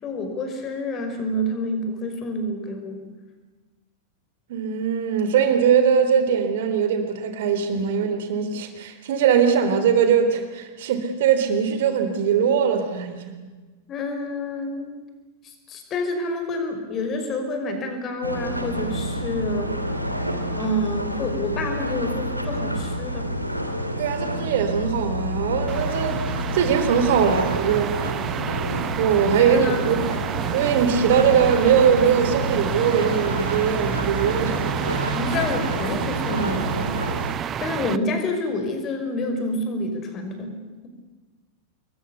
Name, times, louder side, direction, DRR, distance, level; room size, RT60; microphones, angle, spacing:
voice 1, 0.0-3.1 13.9-14.9 15.4-19.8 20.5-23.3 29.4-29.8 35.1-37.0 37.6-40.9, left 1 dB, 30° left, 6 dB, 5.5 m, -28 dB
voice 2, 4.5-13.2 24.0-28.4 29.0-30.1 30.5-34.8, right 7 dB, 55° right, 8 dB, 3.7 m, -21 dB
sound 1, 18.2-37.3, equal, 90° right, 2.7 m, -29 dB
sound 2, 25.7-38.0, right 9 dB, 25° right, 0.8 m, -29 dB
26.5 x 22.5 x 8.4 m, 1.3 s
figure-of-eight pair, 90°, 0 cm